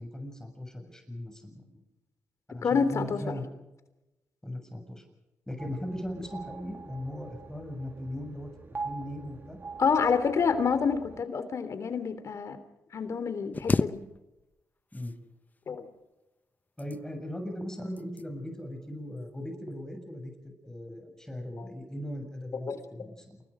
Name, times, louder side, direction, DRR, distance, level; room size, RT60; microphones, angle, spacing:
voice 1, 0.0-1.8 2.5-3.5 4.4-5.0 5.5-8.5 8.8-9.6 14.9-15.2 16.8-23.4, equal, 10° left, 5 dB, 7.1 m, -38 dB
voice 2, 2.6-3.4 9.8-12.6 12.9-14.0 15.7-15.9 21.6-21.7 22.7-22.8, left 5 dB, 60° left, 11 dB, 3.3 m, -28 dB
sound 1, 5.6-11.2, right 4 dB, 40° right, 2.8 m, -44 dB
sound 2, 13.5-14.6 14.9-15.6 16.5-17.3 18.0-18.3 18.7-19.0, left 3 dB, 30° left, 1.0 m, -32 dB
29.0 x 21.0 x 5.1 m, 1.0 s
cardioid pair, 70°, 6 cm